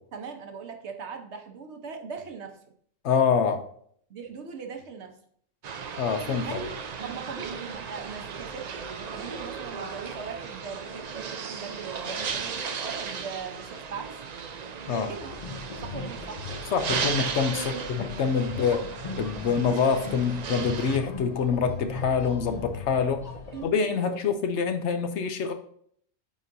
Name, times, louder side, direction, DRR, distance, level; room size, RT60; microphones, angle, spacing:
voice 1, 0.1-2.6 4.1-5.2 6.4-8.7 9.0-14.2 14.9-15.3 15.8-16.5 17.5-17.9 18.5-18.8 23.5-24.2, right 5 dB, 60° right, 4 dB, 1.1 m, -40 dB
voice 2, 3.0-3.6 6.0-6.6 14.9-15.1 16.7-17.6 17.9-18.8 19.2-23.2 23.6-25.5, left 6 dB, 65° left, 8 dB, 0.9 m, -25 dB
sound 1, 5.6-21.0, right 6 dB, 80° right, 0.3 m, -36 dB
sound 2, 15.2-23.7, left 4 dB, 45° left, 0.5 m, -38 dB
9.0 x 4.2 x 2.6 m, 0.62 s
omnidirectional pair, 1.4 m